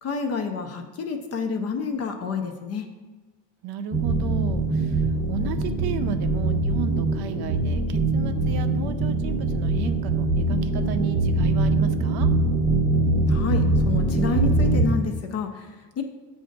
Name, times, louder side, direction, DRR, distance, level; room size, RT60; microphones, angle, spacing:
voice 1, 0.0-2.9 13.3-16.0, left 5 dB, 35° left, 5 dB, 0.4 m, -29 dB
voice 2, 3.6-12.3, right 8 dB, 60° right, 9 dB, 0.5 m, -34 dB
sound 1, 3.9-14.8, right 2 dB, 15° right, 0.7 m, -23 dB
7.5 x 2.6 x 5.1 m, 1.2 s
cardioid pair, 150°, 44 cm